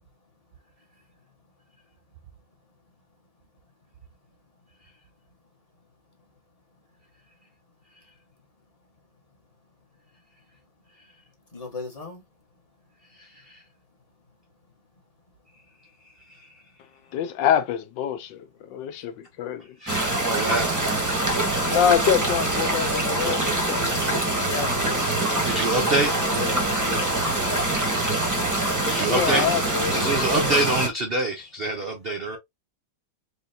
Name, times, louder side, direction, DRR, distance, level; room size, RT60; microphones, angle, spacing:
voice 1, 11.5-12.2 26.3-27.6, left 4 dB, 25° left, 1.1 m, -37 dB
voice 2, 17.1-19.8 21.7-25.1 29.0-30.6, left 9 dB, 80° left, 1.3 m, -26 dB
voice 3, 19.8-20.7 25.4-26.1 28.8-29.5 29.9-32.4, right 2 dB, 75° right, 0.5 m, -25 dB
sound 1, 19.9-30.9, right 2 dB, 15° right, 0.7 m, -24 dB
4.4 x 2.8 x 2.6 m
omnidirectional pair, 2.0 m